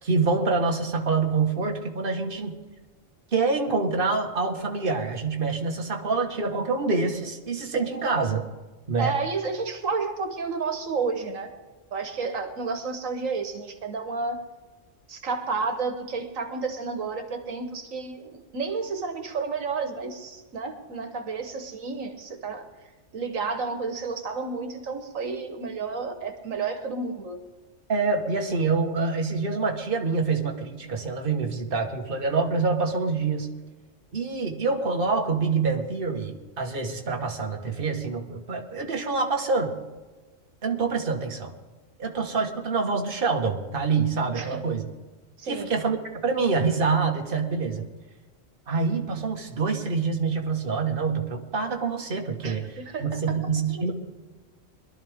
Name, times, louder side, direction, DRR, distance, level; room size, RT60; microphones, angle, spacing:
voice 1, 0.0-2.5 3.3-8.5 8.9-9.1 27.9-33.5 34.1-39.7 40.6-41.5 42.0-44.9 45.4-47.8 48.7-53.9, right 4 dB, 45° right, 2 dB, 1.7 m, -26 dB
voice 2, 9.0-11.5 11.9-14.4 15.1-22.6 23.1-27.4 44.3-44.6 45.4-45.7 52.4-53.4 53.7-53.9, right 4 dB, 85° right, 7 dB, 1.7 m, -31 dB
22.0 x 12.5 x 3.6 m, 1.3 s
omnidirectional pair, 1.3 m